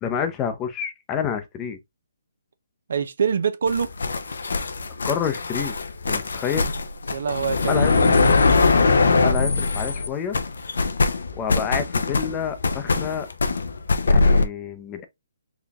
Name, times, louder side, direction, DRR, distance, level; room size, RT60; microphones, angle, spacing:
voice 1, 0.0-1.8 5.0-5.8 6.1-6.7 7.7-7.9 9.2-10.4 11.3-13.3 14.1-15.0, left 7 dB, 20° left, 0.6 m, -28 dB
voice 2, 2.9-3.9 7.1-8.3, right 6 dB, 65° right, 0.5 m, -25 dB
sound 1, 3.7-10.1 10.3-14.5, left 3 dB, 75° left, 0.6 m, -21 dB
4.0 x 3.2 x 2.3 m
hypercardioid pair, 150°, 0 cm